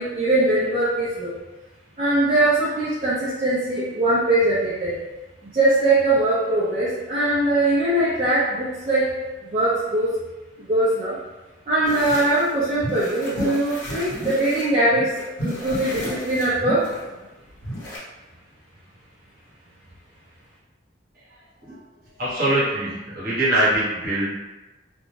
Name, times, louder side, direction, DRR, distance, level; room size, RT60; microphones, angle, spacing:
voice 1, 0.0-1.3 2.0-5.0 5.4-10.2 10.6-11.2 11.7-15.1 15.4-16.9, right 1 dB, 30° right, -11 dB, 0.5 m, -21 dB
sound 1, 11.8-12.5 12.8-14.6 14.9-18.0, equal, 70° left, 0.9 m, -32 dB
voice 2, 22.2-24.4, right 1 dB, 45° right, -8 dB, 1.1 m, -22 dB
2.5 x 2.2 x 3.1 m, 1.1 s
head